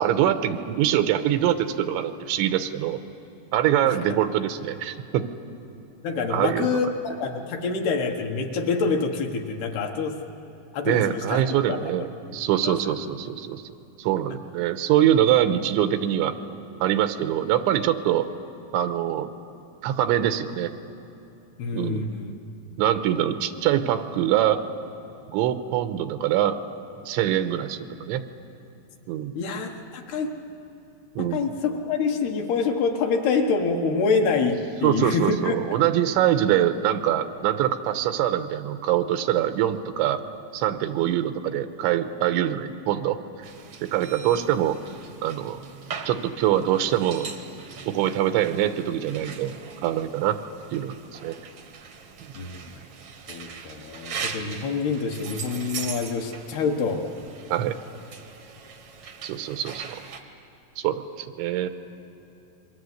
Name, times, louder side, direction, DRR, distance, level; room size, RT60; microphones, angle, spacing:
voice 1, 0.0-3.0 3.5-5.3 6.3-6.8 10.9-13.6 14.0-16.3 16.8-18.3 18.7-19.3 19.8-20.7 21.7-22.1 22.8-24.6 25.3-26.6 27.1-28.2 29.1-29.3 31.2-31.5 34.8-40.2 40.5-43.2 43.8-44.8 45.2-45.6 46.1-47.3 47.9-49.5 49.8-50.4 50.7-51.4 57.5-57.8 59.2-60.0 60.8-61.8, right 11 dB, 90° right, 9 dB, 3.3 m, -24 dB
voice 2, 6.0-10.2 10.7-11.4 11.7-11.8 12.6-13.0 21.6-22.3 29.3-30.3 31.2-35.5 52.3-52.6 53.3-57.0, left 4 dB, 70° left, 2 dB, 3.0 m, -26 dB
sound 1, 43.4-60.2, right 6 dB, 75° right, 1.4 m, -40 dB
28.0 x 22.5 x 8.0 m, 2.9 s
omnidirectional pair, 5.3 m